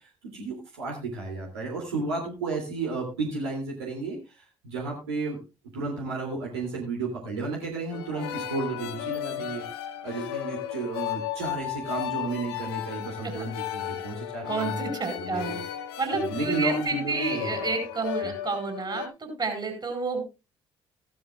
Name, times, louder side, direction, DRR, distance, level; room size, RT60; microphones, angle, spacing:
voice 1, 0.0-5.4 5.7-9.6 10.0-14.8 15.2-15.6 16.2-17.7, right 3 dB, 75° right, -2 dB, 2.8 m, -33 dB
sound 1, 7.9-19.1, left 11 dB, 70° left, 0.9 m, -34 dB
voice 2, 14.5-15.6 16.0-20.2, right 3 dB, 30° right, 5 dB, 4.7 m, -30 dB
16.0 x 12.0 x 2.4 m, 0.27 s
figure-of-eight pair, 45°, 14 cm